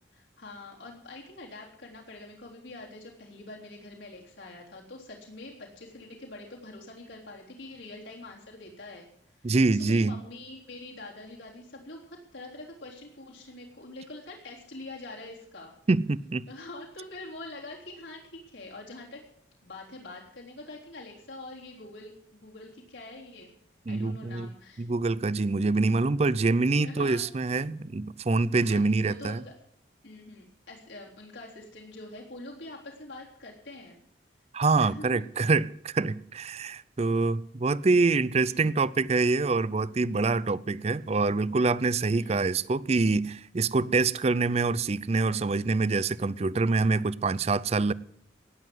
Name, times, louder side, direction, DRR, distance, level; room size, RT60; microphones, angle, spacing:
voice 1, 0.1-9.1 9.4-15.8 16.5-19.2 19.6-23.5 23.9-24.8 26.8-27.2 28.6-29.5 30.0-34.0 34.7-35.2 38.4-38.7 42.1-42.4, left 2 dB, 80° left, 3.6 m, -45 dB
voice 2, 9.4-10.1 15.9-16.4 23.9-24.5 24.8-29.4 34.5-47.9, right 3 dB, 35° right, 0.5 m, -25 dB
18.0 x 7.8 x 7.9 m
head